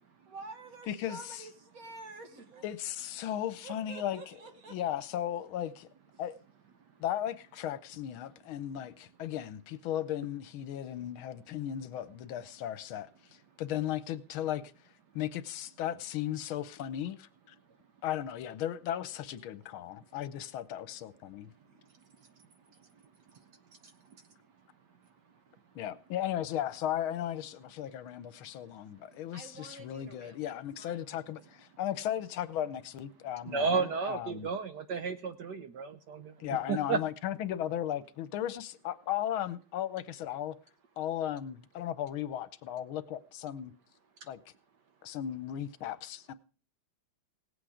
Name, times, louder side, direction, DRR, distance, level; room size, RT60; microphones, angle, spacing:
voice 1, 0.3-2.6 3.6-4.8 21.6-21.9 29.3-31.0, right 3 dB, 45° right, 1.9 m, -48 dB
voice 2, 0.9-1.4 2.6-4.2 4.7-5.9 6.2-6.3 7.0-14.6 15.1-17.5 18.0-21.5 25.7-34.5 36.4-40.6 41.0-43.7 44.3-44.4 45.0-46.3, left 11 dB, 80° left, 1.6 m, -36 dB
voice 3, 33.5-36.3 36.7-37.0, right 5 dB, 65° right, 1.2 m, -32 dB
17.5 x 8.3 x 4.9 m
omnidirectional pair, 2.3 m